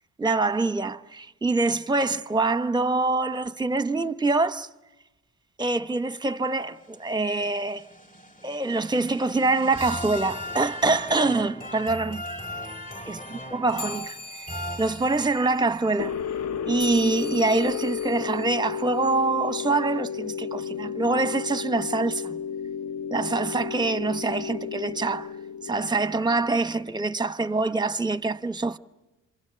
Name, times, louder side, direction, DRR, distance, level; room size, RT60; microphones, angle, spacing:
voice 1, 0.2-4.7 5.6-7.8 8.4-12.2 13.1-16.1 16.7-22.4 23.1-25.3 25.6-28.8, right 3 dB, 15° right, 0.8 m, -25 dB
sound 1, 6.6-15.5, left 1 dB, 30° left, 3.4 m, -38 dB
sound 2, 13.7-19.6, left 5 dB, 70° left, 3.3 m, -43 dB
sound 3, 16.0-26.9, left 7 dB, 55° left, 0.9 m, -33 dB
27.0 x 27.0 x 6.9 m
cardioid pair, 90°, 30 cm